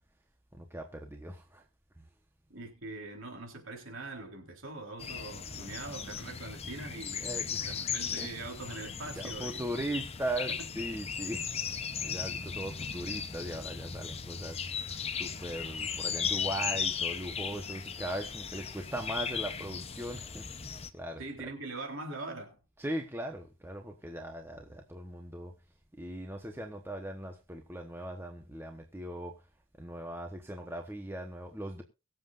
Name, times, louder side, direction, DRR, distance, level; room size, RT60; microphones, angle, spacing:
voice 1, 0.6-1.6 7.2-7.8 8.2-8.3 9.2-11.4 12.0-14.7 15.2-20.4 20.9-21.2 22.8-25.5 26.0-29.3 29.8-31.8, right 1 dB, 10° right, 1.1 m, -39 dB
voice 2, 2.5-9.7 10.6-10.7 10.9-11.0 21.2-22.6, right 2 dB, 60° right, 3.9 m, -43 dB
sound 1, 5.0-20.9, left 6 dB, 25° left, 0.8 m, -37 dB
23.0 x 7.8 x 2.5 m
head